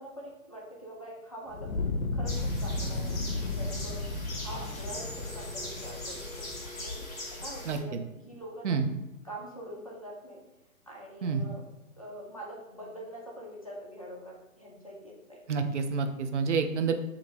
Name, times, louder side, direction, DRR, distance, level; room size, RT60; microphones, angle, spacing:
voice 1, 0.0-1.7 2.1-4.1 4.4-7.1 7.4-8.0 8.3-8.8 9.2-10.4 10.9-11.6 12.0-15.4, right 1 dB, 25° left, -3 dB, 0.4 m, -44 dB
Fire, 1.5-6.7, left 2 dB, 75° left, 0.6 m, -34 dB
sound 1, 2.2-7.8, left 1 dB, 10° left, 0.9 m, -41 dB
sound 2, 3.4-8.2, left 3 dB, 20° right, 1.5 m, -48 dB
voice 2, 7.7-8.0 8.6-8.9 11.2-11.4 15.5-16.9, right 5 dB, 55° right, 7 dB, 0.5 m, -28 dB
2.9 x 2.9 x 3.9 m, 0.97 s
figure-of-eight pair, 140°, 42 cm